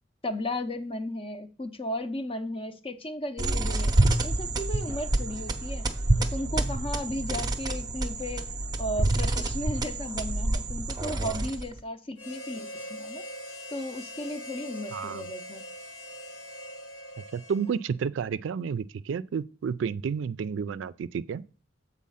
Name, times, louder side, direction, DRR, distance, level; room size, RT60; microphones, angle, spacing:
voice 1, 0.2-3.9 4.2-5.9 6.2-8.5 8.8-13.2 13.7-15.6, left 1 dB, 30° left, 0.6 m, -35 dB
sound 1, 3.4-11.8, right 2 dB, 20° right, 0.6 m, -27 dB
Harmonica, 12.2-18.0, equal, 80° left, 1.2 m, -42 dB
voice 2, 14.9-15.3 17.3-21.4, right 6 dB, 80° right, 0.3 m, -31 dB
7.4 x 4.1 x 5.6 m
head